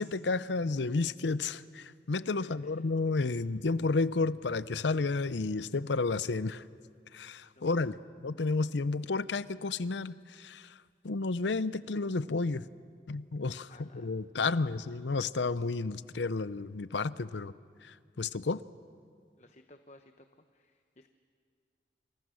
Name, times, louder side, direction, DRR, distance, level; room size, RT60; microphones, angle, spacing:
voice 1, 0.0-6.6 7.1-8.0 8.2-10.7 11.0-12.6 13.1-17.5 17.8-18.6, left 3 dB, 90° left, 16 dB, 0.7 m, -31 dB
voice 2, 2.4-2.8 3.3-3.4 7.6-8.0 13.7-14.7 19.4-20.3 20.5-21.1, left 2 dB, 40° left, 7 dB, 0.9 m, -58 dB
29.0 x 27.5 x 6.4 m, 2.1 s
head